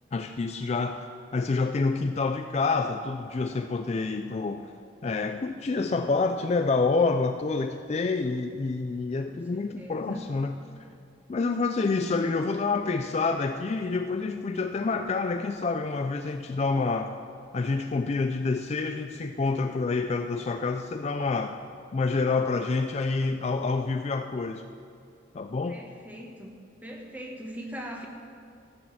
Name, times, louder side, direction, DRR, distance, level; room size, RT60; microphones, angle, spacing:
voice 1, 0.1-1.0 1.3-4.7 5.0-10.5 11.3-17.1 17.5-21.6 21.9-24.6 25.3-25.8, left 3 dB, 30° left, 7 dB, 0.3 m, -27 dB
voice 2, 9.2-10.3 25.7-26.6 26.8-28.1, equal, 10° right, 1 dB, 1.1 m, -41 dB
13.5 x 6.4 x 7.4 m, 2.3 s
head